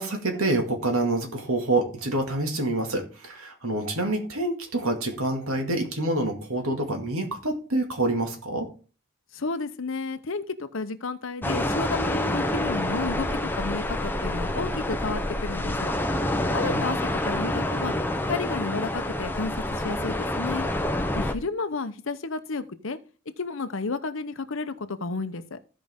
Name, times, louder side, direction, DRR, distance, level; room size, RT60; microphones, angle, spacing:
voice 1, 0.0-8.7 16.4-16.8, right 2 dB, 75° right, 3 dB, 2.0 m, -27 dB
voice 2, 9.3-15.9 16.5-17.0 17.2-17.9 18.3-20.7 21.1-23.0 23.4-25.6, left 3 dB, 60° left, 11 dB, 0.8 m, -32 dB
sound 1, 11.4-21.3, left 1 dB, 10° left, 0.6 m, -27 dB
15.5 x 5.2 x 3.6 m, 0.36 s
head